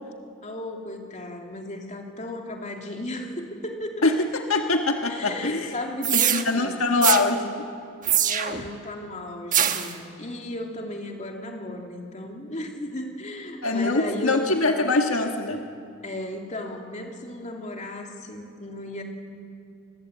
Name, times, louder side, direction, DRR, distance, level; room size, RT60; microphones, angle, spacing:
voice 1, 0.4-4.1 5.1-6.8 8.3-14.4 16.0-19.0, left 1 dB, 35° left, 1 dB, 2.9 m, -35 dB
voice 2, 4.0-5.7 6.1-7.7 13.6-15.6, left 3 dB, 80° left, 4 dB, 1.6 m, -23 dB
sound 1, 6.0-6.4 7.0-7.2 8.0-8.7 9.5-9.9, right 10 dB, 40° right, 1.2 m, -22 dB
28.0 x 21.0 x 8.1 m, 2.4 s
head